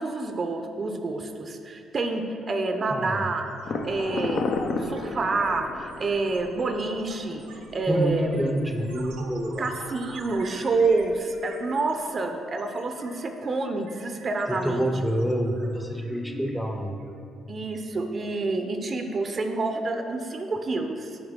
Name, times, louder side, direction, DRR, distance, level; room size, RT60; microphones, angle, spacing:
voice 1, 0.0-3.4 3.8-4.4 4.8-8.3 9.6-14.9 17.5-21.2, right 3 dB, 45° right, 5 dB, 0.5 m, -28 dB
sound 1, 2.4-2.6 2.8-17.2, right 3 dB, 85° right, 0.7 m, -48 dB
voice 2, 2.9-3.2 7.9-9.7 14.5-16.9, equal, ahead, 4 dB, 0.6 m, -27 dB
sound 2, 3.6-11.2, left 3 dB, 65° left, 0.5 m, -35 dB
7.9 x 3.4 x 3.7 m, 2.4 s
supercardioid pair, 60°, 0 cm